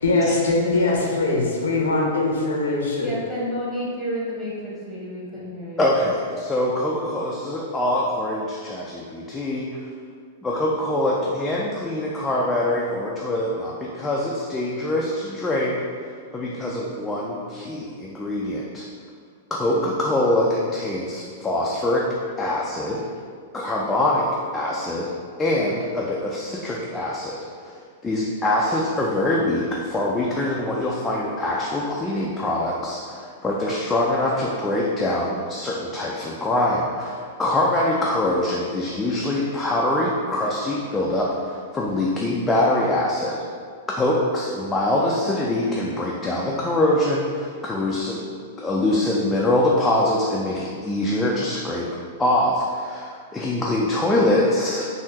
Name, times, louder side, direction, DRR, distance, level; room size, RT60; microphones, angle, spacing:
voice 1, 0.0-3.1, left 2 dB, 75° left, -2 dB, 0.6 m, -21 dB
voice 2, 3.0-5.9, equal, 5° right, -9 dB, 1.2 m, -30 dB
voice 3, 5.8-9.7 10.4-15.8 16.3-18.9 19.5-22.1 22.4-23.0 23.5-24.3 24.5-25.1 25.4-27.4 27.6-27.7 28.0-43.4 43.9-48.2 48.6-51.9 52.2-54.9, left 1 dB, 15° left, -4 dB, 0.4 m, -24 dB
3.5 x 2.6 x 2.8 m, 2.1 s
figure-of-eight pair, 105°, 0 cm